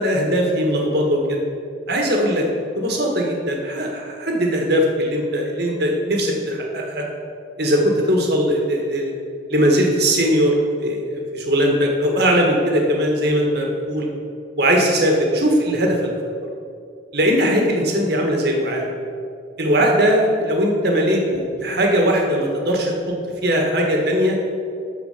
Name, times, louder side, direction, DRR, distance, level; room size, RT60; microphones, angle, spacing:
voice 1, 0.0-1.4 1.9-2.4 2.7-7.0 7.6-9.1 9.5-14.1 14.6-16.0 17.1-18.9 19.6-23.1 23.4-24.4, equal, 55° right, 1 dB, 1.6 m, -19 dB
12.5 x 4.4 x 6.7 m, 2.4 s
head